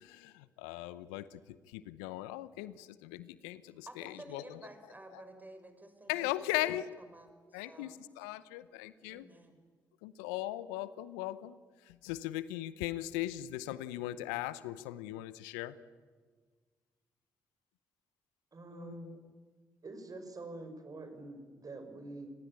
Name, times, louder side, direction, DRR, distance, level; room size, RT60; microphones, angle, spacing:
voice 1, 0.0-4.6 6.1-6.9 7.5-9.3 10.0-11.6 11.9-15.7 18.7-19.2, left 15 dB, 80° left, 16 dB, 0.7 m, -39 dB
voice 2, 3.9-6.3 6.6-8.0 9.1-9.6, right 2 dB, 20° right, 8 dB, 6.3 m, -53 dB
voice 3, 18.5-19.2 19.8-22.3, right 2 dB, 40° right, 7 dB, 5.6 m, -46 dB
26.5 x 20.5 x 9.8 m, 1.5 s
hypercardioid pair, 40°, 9 cm